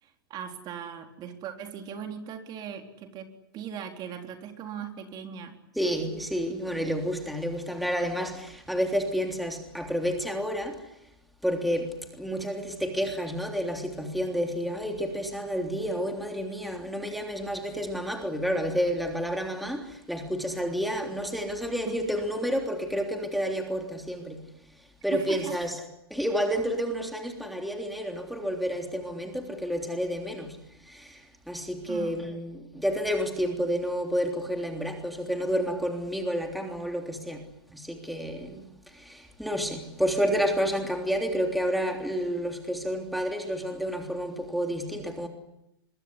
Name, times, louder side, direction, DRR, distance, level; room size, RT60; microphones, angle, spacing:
voice 1, 0.0-5.6 21.9-22.1 25.1-25.6 31.9-32.3, right 8 dB, 30° right, 4.0 m, -39 dB
voice 2, 5.8-10.9 11.4-24.5 25.0-25.8 26.1-30.6 30.9-38.7 38.9-45.3, equal, ahead, 3.3 m, -30 dB
25.5 x 22.5 x 9.9 m
hypercardioid pair, 125°, 13 cm